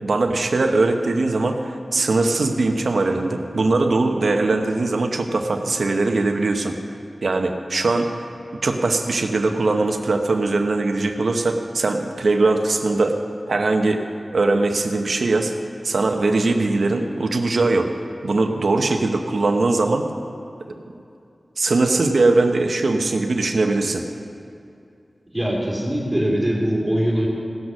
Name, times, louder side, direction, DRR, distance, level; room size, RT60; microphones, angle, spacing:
voice 1, 0.0-6.7 7.2-8.1 8.6-13.2 13.5-14.0 14.3-15.5 15.8-17.9 18.2-20.1 21.6-24.0, right 3 dB, 80° right, 4 dB, 0.8 m, -20 dB
voice 2, 25.3-27.3, equal, 10° right, -4 dB, 2.8 m, -22 dB
17.0 x 6.3 x 6.2 m, 2.6 s
wide cardioid pair, 90°, 0 cm